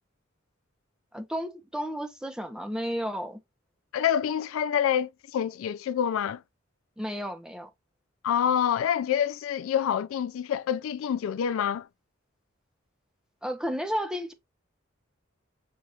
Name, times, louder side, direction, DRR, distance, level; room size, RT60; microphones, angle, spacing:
voice 1, 1.1-3.4 7.0-7.7 13.4-14.3, equal, 5° right, 0.6 m, -32 dB
voice 2, 3.9-6.4 8.2-11.9, left 9 dB, 80° left, 0.3 m, -27 dB
6.2 x 2.4 x 2.7 m
head